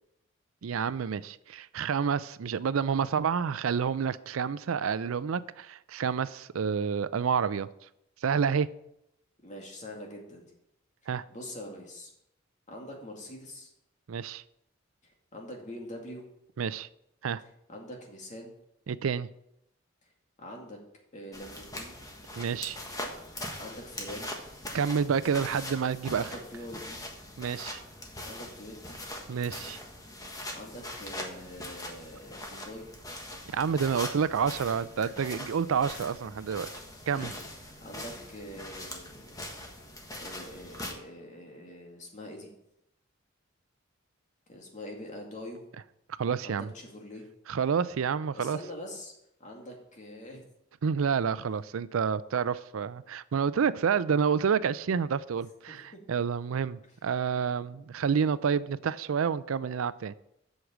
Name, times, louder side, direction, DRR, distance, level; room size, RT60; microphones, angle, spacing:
voice 1, 0.6-7.7 8.2-8.7 11.1-11.2 14.1-14.4 16.6-16.9 17.2-17.4 18.9-19.3 22.4-22.8 24.7-26.3 27.4-27.8 29.3-29.8 33.5-36.7 37.1-37.3 46.2-46.7 47.5-48.6 50.8-60.1, right 6 dB, 90° right, 16 dB, 0.4 m, -29 dB
voice 2, 9.4-10.5 11.3-12.1 12.7-13.7 15.3-16.2 17.7-18.6 20.4-20.8 21.1-22.0 23.6-24.3 26.1-27.0 28.2-29.0 30.5-32.9 37.1-37.3 37.6-39.5 40.2-42.5 44.5-45.6 46.4-47.3 48.3-49.1 49.4-50.4 55.7-56.0, left 1 dB, 35° left, 0 dB, 2.3 m, -44 dB
sound 1, 21.3-40.9, left 1 dB, 20° left, 1.4 m, -42 dB
8.0 x 6.5 x 7.3 m, 0.80 s
head